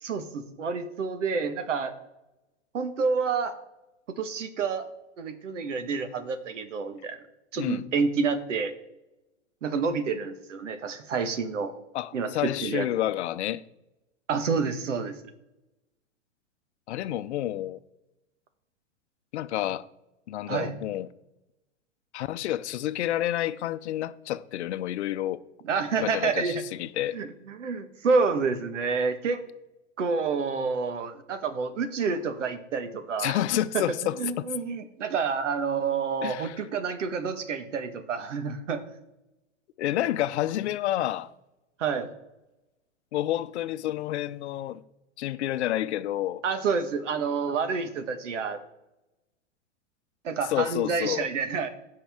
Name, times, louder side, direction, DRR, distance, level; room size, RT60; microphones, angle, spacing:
voice 1, 0.0-1.9 2.7-3.6 4.2-4.9 5.2-7.2 7.5-8.7 9.6-11.7 12.1-12.9 14.3-15.1 20.5-20.7 25.6-26.6 27.1-29.4 30.0-33.4 33.7-33.8 34.2-38.8 41.8-42.1 46.4-48.6 50.2-51.7, right 5 dB, 80° right, 1.5 m, -28 dB
voice 2, 11.9-13.6 16.9-17.8 19.3-19.9 20.3-21.1 22.1-25.4 26.0-27.2 33.2-34.5 36.2-36.6 39.8-41.3 43.1-44.8 45.2-46.4 50.5-51.3, left 13 dB, 65° left, 0.7 m, -29 dB
16.0 x 5.6 x 3.6 m
hypercardioid pair, 115°, 36 cm